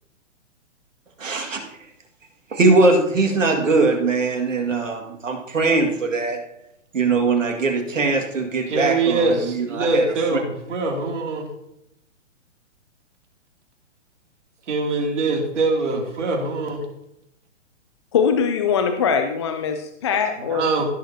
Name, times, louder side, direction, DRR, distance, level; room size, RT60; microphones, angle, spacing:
voice 1, 1.2-1.6 2.5-6.4 6.9-10.4, right 3 dB, 90° right, 2 dB, 2.1 m, -21 dB
voice 2, 8.7-11.5 14.7-16.8 20.5-20.8, right 3 dB, 70° right, 1 dB, 2.8 m, -23 dB
voice 3, 18.1-20.8, left 6 dB, 25° left, 7 dB, 0.4 m, -22 dB
15.5 x 7.2 x 2.8 m, 0.83 s
hypercardioid pair, 140°, 37 cm